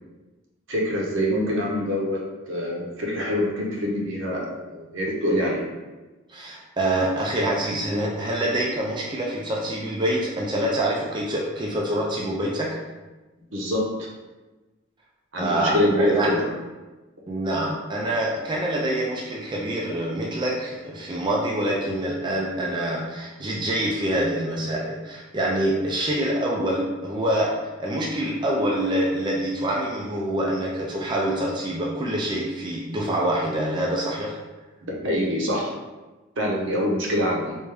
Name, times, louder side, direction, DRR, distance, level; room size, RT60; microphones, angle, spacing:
voice 1, 0.7-2.2 2.5-5.7 13.5-14.1 15.3-16.4 34.8-35.7 36.4-37.6, equal, 70° right, -2 dB, 0.8 m, -25 dB
voice 2, 6.3-12.8 15.4-16.3 17.3-34.4, right 1 dB, 25° right, -3 dB, 0.4 m, -26 dB
3.4 x 2.6 x 3.3 m, 1.2 s
head